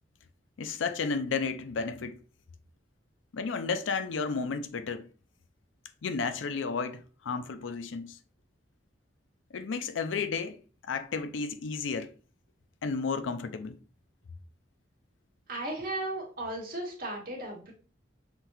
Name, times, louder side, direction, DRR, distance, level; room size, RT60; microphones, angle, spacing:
voice 1, 0.6-2.2 3.3-5.1 6.0-8.2 9.5-10.6 10.8-12.1 12.8-13.7, left 5 dB, 85° left, 0.5 m, -32 dB
voice 2, 15.5-17.7, right 1 dB, 50° right, 1.4 m, -35 dB
5.8 x 3.0 x 2.7 m
head